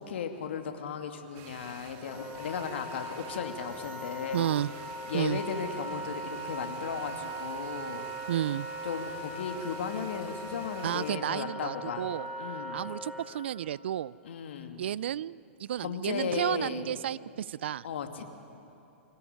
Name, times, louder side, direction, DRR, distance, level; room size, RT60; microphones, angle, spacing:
voice 1, 0.1-4.5 5.1-8.1 8.8-12.1 12.4-12.8 14.2-14.8 15.8-16.9 17.8-18.2, left 7 dB, 65° left, 5 dB, 2.5 m, -36 dB
sound 1, 1.3-11.1, right 8 dB, 40° right, 2.2 m, -50 dB
Wind instrument woodwind instrument, 2.0-13.2, right 1 dB, 5° left, 7.3 m, -40 dB
voice 2, 4.3-4.7 5.1-5.4 8.3-8.7 10.8-12.3 12.7-14.1 14.8-17.9, right 11 dB, 65° right, 22 dB, 0.5 m, -32 dB
25.5 x 17.5 x 9.6 m, 2.8 s
hypercardioid pair, 110°, 7 cm